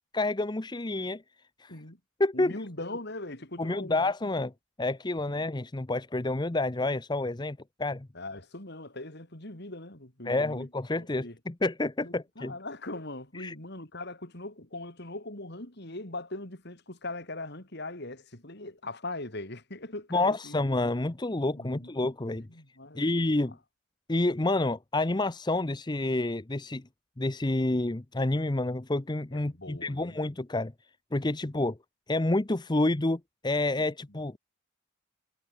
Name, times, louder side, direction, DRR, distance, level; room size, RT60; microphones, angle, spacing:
voice 1, 0.1-1.2 1.6-1.7 2.2-2.5 3.6-4.5 4.8-8.1 10.2-12.5 13.3-13.5 20.1-22.5 23.0-23.6 24.1-26.8 27.2-30.7 31.1-31.8 32.1-34.4, left 2 dB, 20° left, 0.7 m, -29 dB
voice 2, 1.7-2.0 2.3-4.5 5.3-5.4 8.1-10.7 11.0-11.4 12.0-20.7 21.5-21.9 22.5-23.1 29.3-30.2, left 2 dB, 55° left, 4.0 m, -41 dB
head